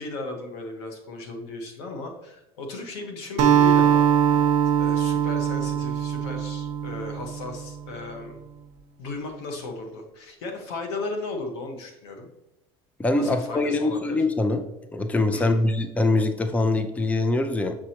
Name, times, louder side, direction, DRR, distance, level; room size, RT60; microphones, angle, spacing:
voice 1, 0.0-4.5 4.8-8.4 9.0-12.3 13.2-14.2 15.3-15.7, left 3 dB, 90° left, 3 dB, 1.3 m, -35 dB
Acoustic guitar, 3.4-7.9, right 9 dB, 55° right, 0.7 m, -22 dB
voice 2, 13.0-14.6 14.9-17.8, left 2 dB, 10° left, 7 dB, 0.6 m, -23 dB
7.2 x 4.9 x 2.9 m, 0.93 s
supercardioid pair, 115°, 13 cm